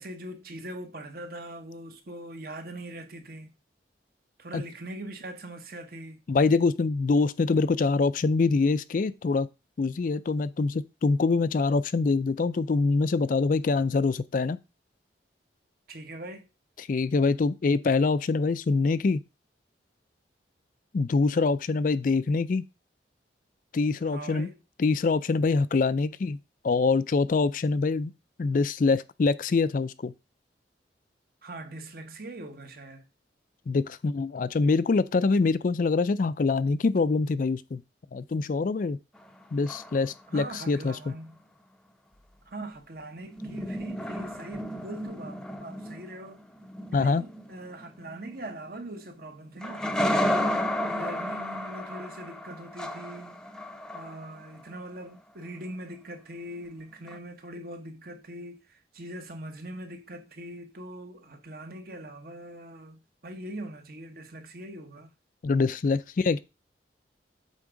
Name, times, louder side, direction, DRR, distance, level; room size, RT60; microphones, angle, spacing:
voice 1, 0.0-3.5 4.4-6.2 15.9-16.5 24.0-24.6 31.4-33.0 40.3-41.4 42.5-46.4 46.9-49.8 50.2-53.4 53.9-65.1, right 1 dB, 55° right, 1.1 m, -41 dB
voice 2, 6.3-9.5 9.8-14.6 16.8-19.2 20.9-22.7 23.7-24.5 24.8-26.4 26.6-28.1 28.4-30.1 33.7-37.8 38.1-39.0 39.5-41.1 46.9-47.2 65.4-66.4, left 4 dB, 45° left, 0.4 m, -25 dB
sound 1, 39.2-40.4 43.2-49.0 49.6-54.6 57.1-57.2, left 1 dB, 5° left, 0.6 m, -33 dB
8.3 x 3.6 x 5.0 m
head